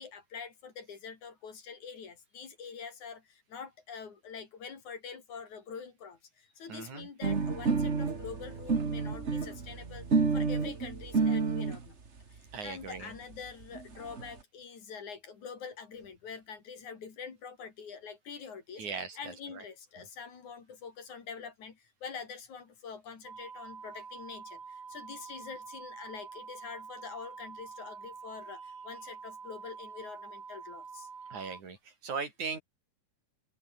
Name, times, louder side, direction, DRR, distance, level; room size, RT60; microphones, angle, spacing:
voice 1, 0.0-6.2 6.6-10.0 10.3-12.0 12.3-18.9 19.2-31.1, left 6 dB, 65° left, 4.8 m, -45 dB
voice 2, 6.7-7.1 12.5-13.1 18.8-19.6 20.0-20.1 31.3-32.6, right 5 dB, 65° right, 5.8 m, -39 dB
sound 1, 7.2-11.8 12.6-12.7 13.0-13.1 13.3-13.4 13.6-14.3, right 4 dB, 25° right, 1.7 m, -30 dB
sound 2, 23.2-31.6, right 5 dB, 45° right, 3.9 m, -47 dB
open air
omnidirectional pair, 3.6 m